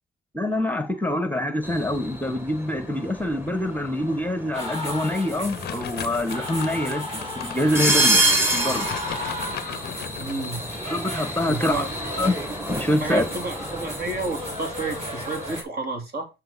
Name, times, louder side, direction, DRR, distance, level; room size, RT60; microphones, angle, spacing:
voice 1, 0.3-8.2 8.5-8.9 10.8-11.8 12.2-12.3 12.7-13.2, left 1 dB, 10° left, 1.1 m, -25 dB
sound 1, 1.6-15.6, right 1 dB, 10° right, 1.9 m, -29 dB
sound 2, 4.5-15.6, left 1 dB, 30° right, 4.0 m, -35 dB
sound 3, 5.5-10.5, left 11 dB, 55° left, 0.5 m, -37 dB
voice 2, 10.2-10.6 11.5-11.9 13.0-16.3, right 3 dB, 50° right, 2.6 m, -30 dB
9.2 x 4.4 x 4.1 m
cardioid pair, 90°, 20 cm